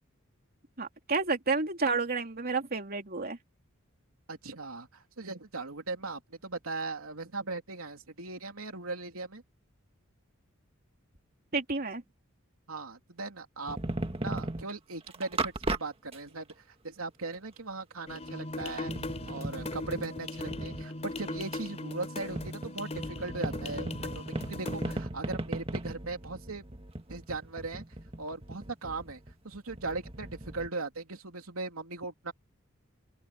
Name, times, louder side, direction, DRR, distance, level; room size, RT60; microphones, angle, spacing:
voice 1, 0.8-3.4 11.5-12.0, right 4 dB, 45° right, 3.2 m, -30 dB
voice 2, 4.3-9.4 12.7-13.8 14.2-18.9 19.3-26.7 27.1-27.8 28.2-29.2 29.4-32.3, right 3 dB, 90° right, 3.0 m, -39 dB
sound 1, 13.7-14.7 15.1-15.8 16.1-16.2 16.5-16.6 17.3-17.4 18.6-20.9 22.4-30.7, right 2 dB, 30° right, 1.8 m, -37 dB
sound 2, 18.1-25.0, left 2 dB, 30° left, 3.9 m, -39 dB
open air
head